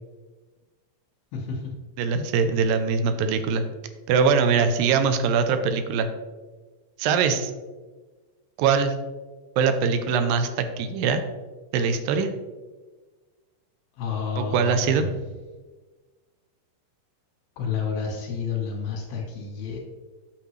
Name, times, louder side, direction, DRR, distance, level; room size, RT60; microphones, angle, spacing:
voice 1, 2.0-3.6 4.1-6.1 7.0-7.5 8.6-8.9 9.6-11.2 11.7-12.3 14.4-15.1, right 5 dB, 80° right, 8 dB, 2.3 m, -22 dB
voice 2, 14.0-15.0 17.6-19.8, left 6 dB, 85° left, -2 dB, 3.0 m, -30 dB
8.5 x 6.1 x 3.2 m, 1.3 s
omnidirectional pair, 4.2 m